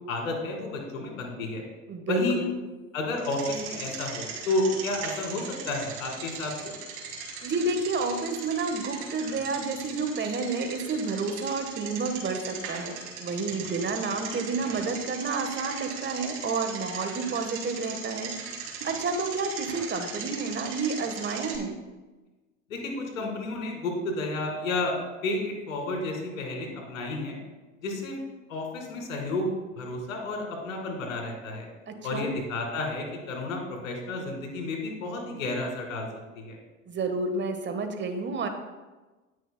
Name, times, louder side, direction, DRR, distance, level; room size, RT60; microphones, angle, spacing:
voice 1, 0.1-1.6 2.1-2.4 2.9-6.8 22.7-25.0 25.2-27.4 27.8-28.1 28.5-31.7 32.0-36.1 36.3-36.6, left 2 dB, 75° left, 1 dB, 2.3 m, -31 dB
voice 2, 1.9-2.5 7.4-12.9 13.2-21.7 31.9-32.4 36.9-38.5, right 3 dB, 30° right, 6 dB, 1.4 m, -30 dB
Bicycle, 3.2-21.6, right 5 dB, 65° right, 2.7 m, -38 dB
18.5 x 6.3 x 2.3 m, 1.2 s
hypercardioid pair, 70°, 40 cm